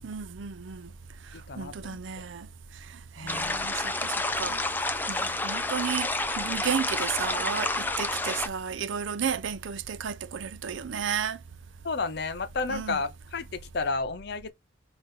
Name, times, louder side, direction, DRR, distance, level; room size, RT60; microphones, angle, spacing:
voice 1, 0.0-0.9 1.6-2.5 3.2-11.4 12.7-13.0, right 7 dB, 80° right, 0.5 m, -33 dB
voice 2, 1.3-2.0 3.2-3.7 11.8-14.5, left 3 dB, 60° left, 0.7 m, -32 dB
sound 1, 3.3-8.5, left 2 dB, 10° left, 0.5 m, -29 dB
5.3 x 2.6 x 3.7 m
head